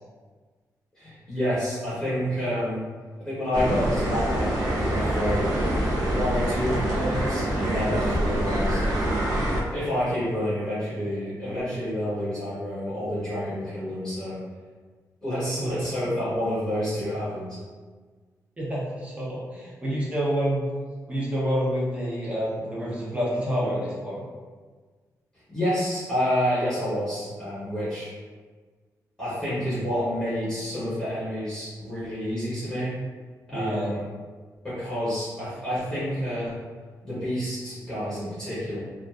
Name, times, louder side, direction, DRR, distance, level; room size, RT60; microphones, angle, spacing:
voice 1, 1.0-2.8 3.2-5.5 6.0-8.8 9.7-14.4 15.2-17.6 25.5-28.1 29.2-32.9 33.5-34.0 34.6-36.6 37.0-38.8, equal, 10° left, -11 dB, 0.9 m, -28 dB
sound 1, 3.5-9.6, right 1 dB, 90° right, 0.6 m, -25 dB
voice 2, 18.6-20.6 21.1-24.2 33.5-33.9, equal, 20° right, -6 dB, 0.7 m, -28 dB
2.5 x 2.3 x 2.3 m, 1.4 s
wide cardioid pair, 175°, 7 cm